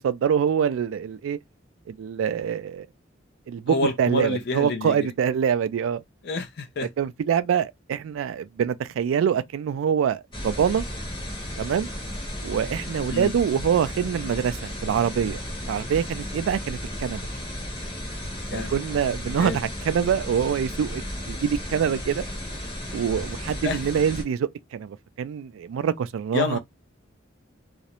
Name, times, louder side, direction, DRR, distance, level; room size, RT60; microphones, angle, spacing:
voice 1, 0.0-1.4 1.9-2.9 3.5-6.0 7.0-10.8 11.6-11.9 12.4-15.4 15.7-17.2 18.5-21.0 21.3-22.2 22.9-26.6, right 8 dB, 85° right, 0.3 m, -25 dB
voice 2, 3.7-5.1 6.2-6.9 13.1-13.3 18.5-18.7 19.4-19.6 23.6-23.8 26.3-26.6, left 3 dB, 60° left, 0.5 m, -28 dB
sound 1, 10.3-24.2, left 1 dB, 25° left, 0.9 m, -34 dB
2.4 x 2.0 x 2.9 m
head